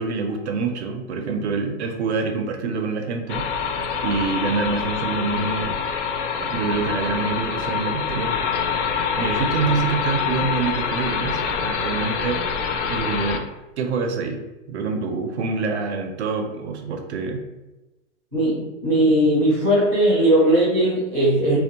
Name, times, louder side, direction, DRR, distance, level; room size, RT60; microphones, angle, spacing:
voice 1, 0.0-3.6 4.0-5.8 6.4-8.4 9.2-12.4 12.9-13.5 13.8-14.4 14.7-17.4, right 4 dB, 60° right, 4 dB, 0.5 m, -26 dB
sound 1, 3.3-13.4, left 6 dB, 70° left, 0.5 m, -25 dB
voice 2, 18.3-21.6, right 1 dB, 5° left, -9 dB, 0.4 m, -18 dB
2.5 x 2.1 x 2.7 m, 1.1 s
hypercardioid pair, 175°, 37 cm